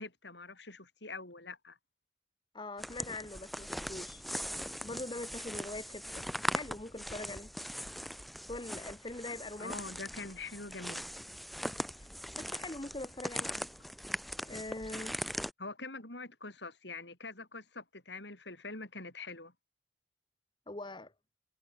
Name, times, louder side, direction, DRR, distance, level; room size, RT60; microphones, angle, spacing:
voice 1, 0.0-1.8 9.6-11.0 15.6-19.5, left 3 dB, 75° left, 7.4 m, -44 dB
voice 2, 2.5-4.2 4.8-6.3 6.5-7.5 8.5-9.7 12.0-12.1 12.3-13.7 14.4-15.2 20.7-21.1, left 2 dB, 25° left, 1.2 m, -42 dB
sound 1, 2.8-15.5, equal, ahead, 1.1 m, -40 dB
head